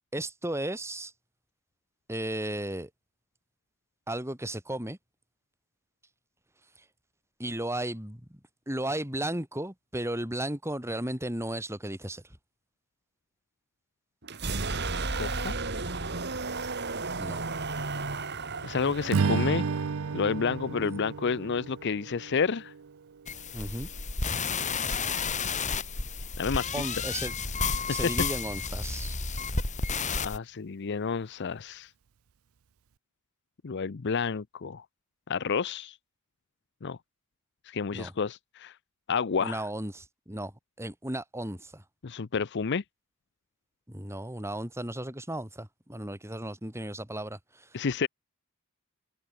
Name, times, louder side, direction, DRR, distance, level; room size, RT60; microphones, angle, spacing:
voice 1, 0.1-1.1 2.1-2.9 4.1-5.0 7.4-8.4 8.7-12.2 17.2-17.4 20.8-21.0 23.5-23.9 26.7-27.3 27.9-29.1 37.9-38.1 39.4-40.5 40.8-41.8 43.9-47.8, right 1 dB, 10° right, 4.5 m, -35 dB
Monster Roar, 14.2-22.0, right 3 dB, 50° right, 3.3 m, -34 dB
voice 2, 15.2-15.5 18.6-19.6 20.1-22.7 26.4-26.9 30.2-31.9 33.6-34.8 35.3-35.9 36.8-37.0 37.7-38.7 39.1-39.6 42.0-42.8 47.7-48.1, left 5 dB, 55° left, 0.6 m, -30 dB
Strum, 19.1-23.5, right 5 dB, 75° right, 0.5 m, -32 dB
sound 1, 23.3-30.4, left 4 dB, 35° left, 3.5 m, -31 dB
head